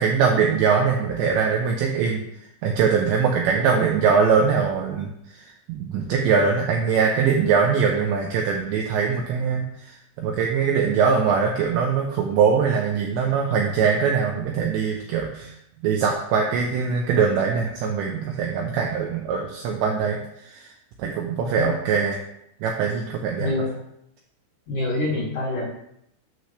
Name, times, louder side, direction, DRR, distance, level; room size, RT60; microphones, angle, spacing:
voice 1, 0.0-2.2 2.6-5.4 5.7-9.9 10.2-15.5 15.8-20.7 21.0-22.2 22.6-23.5, right 6 dB, 80° right, 1 dB, 2.6 m, -22 dB
voice 2, 21.4-21.8 23.4-23.7 24.7-25.7, left 2 dB, 65° left, -6 dB, 2.0 m, -26 dB
9.1 x 6.5 x 3.3 m, 0.78 s
omnidirectional pair, 5.9 m